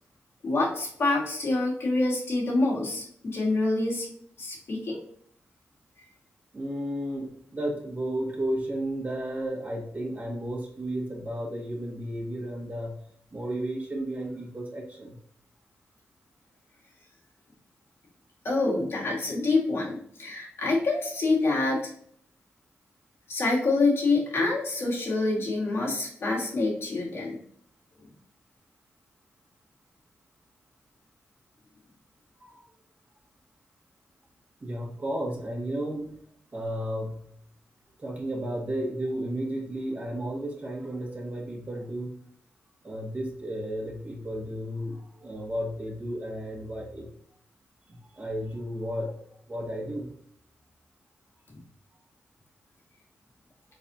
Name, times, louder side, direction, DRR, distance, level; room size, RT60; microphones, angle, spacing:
voice 1, 0.4-4.1 4.4-5.0 18.4-21.8 23.3-27.4 28.0-28.1, left 3 dB, 65° left, -3 dB, 1.9 m, -26 dB
voice 2, 6.5-13.1 13.3-15.2 32.4-32.6 34.6-36.2 36.5-37.3 38.0-42.2 42.8-47.1 47.9-49.2 49.5-50.1, right 1 dB, 35° right, -1 dB, 1.6 m, -33 dB
4.2 x 4.1 x 2.7 m, 0.64 s
cardioid pair, 70°, 4 cm